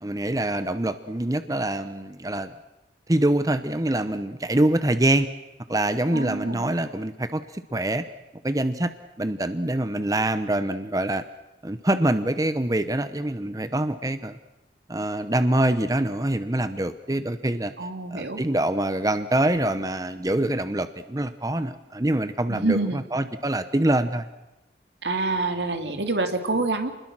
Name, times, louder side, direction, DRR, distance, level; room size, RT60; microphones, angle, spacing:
voice 1, 0.0-2.5 3.1-5.3 5.7-8.1 8.4-8.9 9.2-11.2 11.6-14.4 14.9-17.7 18.1-24.3, right 1 dB, 20° right, 11 dB, 0.8 m, -25 dB
voice 2, 6.1-6.7 17.8-18.4 22.5-23.0 25.0-26.9, right 3 dB, 80° right, 7 dB, 2.4 m, -26 dB
29.0 x 21.0 x 6.2 m, 1.0 s
head